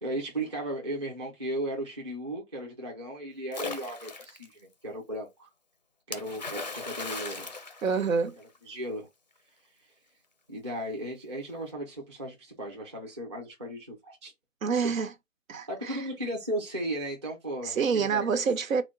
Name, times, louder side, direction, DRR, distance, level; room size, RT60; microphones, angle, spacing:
voice 1, 0.0-5.5 6.1-7.5 8.6-9.1 10.5-14.3 14.8-14.9 15.7-18.3, right 1 dB, 20° right, 0.7 m, -36 dB
Splash splatter, 3.5-4.5 6.1-8.6, left 3 dB, 35° left, 0.4 m, -38 dB
voice 2, 7.8-8.4 14.6-15.1 15.5-16.0 17.6-18.8, right 5 dB, 80° right, 0.9 m, -27 dB
3.6 x 2.1 x 3.7 m
hypercardioid pair, 170°, 39 cm